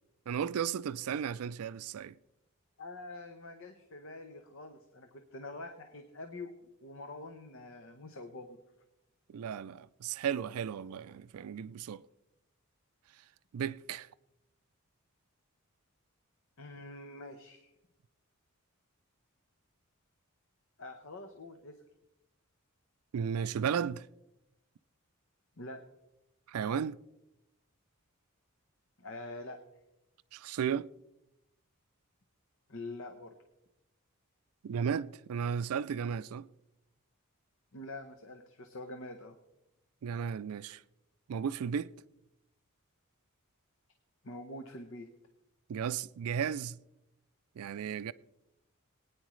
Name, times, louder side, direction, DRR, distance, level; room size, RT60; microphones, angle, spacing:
voice 1, 0.3-2.1 9.3-12.0 13.5-14.1 23.1-24.1 26.5-27.0 30.3-30.9 34.6-36.5 40.0-40.8 41.3-41.9 45.7-46.8 47.6-48.1, right 7 dB, 80° right, 0.4 m, -34 dB
voice 2, 2.8-8.6 16.6-17.7 20.8-21.8 25.6-25.9 29.0-29.6 32.7-33.4 37.7-39.4 44.2-45.1, left 2 dB, 60° left, 0.9 m, -45 dB
21.5 x 9.6 x 3.2 m
head